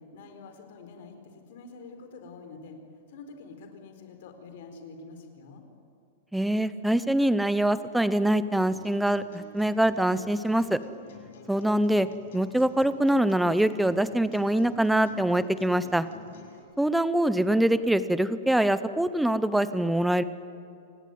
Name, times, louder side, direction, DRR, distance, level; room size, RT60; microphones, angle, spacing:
voice 1, 0.0-2.8 3.1-5.6, left 4 dB, 55° left, 6 dB, 4.5 m, -46 dB
voice 2, 6.3-10.8 11.5-12.1 12.3-16.1 16.8-20.2, right 1 dB, ahead, 13 dB, 0.7 m, -24 dB
sound 1, 8.6-16.6, left 5 dB, 70° left, 6.4 m, -48 dB
28.0 x 19.0 x 9.4 m, 2.5 s
supercardioid pair, 170°, 0 cm